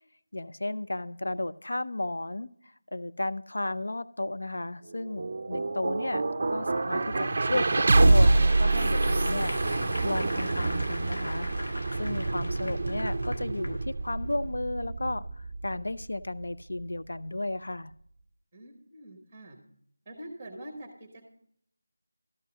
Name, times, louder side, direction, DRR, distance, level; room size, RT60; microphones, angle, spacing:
voice 1, 0.3-6.2 6.5-9.5 10.0-17.9, left 2 dB, 65° left, 13 dB, 0.4 m, -34 dB
sound 1, 4.9-17.0, right 2 dB, 30° right, 0.5 m, -26 dB
Applause / Crowd, 8.0-13.8 14.3-14.4, left 1 dB, 80° left, 1.4 m, -41 dB
voice 2, 18.5-19.6 20.0-21.3, right 1 dB, 10° right, 5 dB, 1.2 m, -45 dB
12.5 x 5.5 x 6.3 m, 0.67 s
figure-of-eight pair, 180°, 0 cm